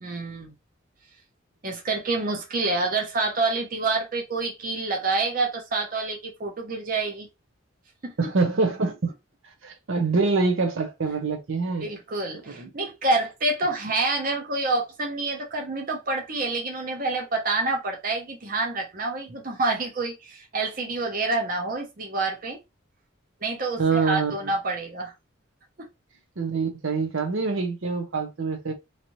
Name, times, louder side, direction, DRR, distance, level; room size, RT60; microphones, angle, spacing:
voice 1, 0.0-0.5 1.6-7.3 8.0-8.1 11.8-22.6 23.4-25.1 25.8-25.9, right 3 dB, 40° right, 0.7 m, -27 dB
voice 2, 8.2-9.1 9.6-11.9 12.5-12.7 23.8-24.3 26.4-28.7, right 4 dB, 75° right, 0.8 m, -25 dB
3.2 x 2.6 x 3.0 m
head